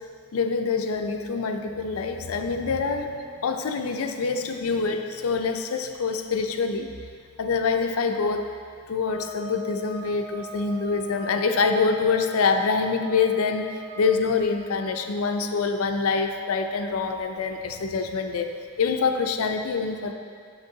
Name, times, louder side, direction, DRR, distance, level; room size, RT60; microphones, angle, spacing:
voice 1, 0.3-3.1 3.4-6.9 7.4-8.5 8.9-20.1, left 4 dB, 90° left, 6 dB, 0.5 m, -25 dB
sound 1, 1.3-5.5, right 3 dB, 75° right, 0.8 m, -53 dB
sound 2, 9.0-14.5, equal, 60° left, 1.4 m, -40 dB
7.9 x 6.6 x 2.8 m, 2.2 s
head